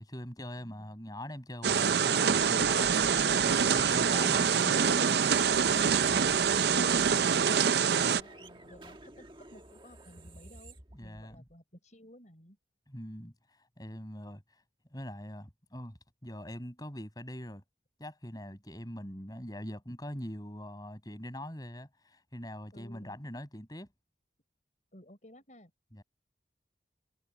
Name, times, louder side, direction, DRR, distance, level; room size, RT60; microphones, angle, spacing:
voice 1, 0.0-5.1 8.0-8.2 10.9-11.4 12.9-14.6 14.9-17.6 18.0-23.9 25.9-26.0, equal, 20° left, 6.3 m, -43 dB
sound 1, 1.6-8.2, right 7 dB, 65° right, 0.5 m, -25 dB
sound 2, 3.1-11.5, right 1 dB, 25° right, 1.6 m, -48 dB
voice 2, 8.0-12.6 22.7-23.2 24.9-25.7, left 1 dB, 40° left, 5.1 m, -55 dB
head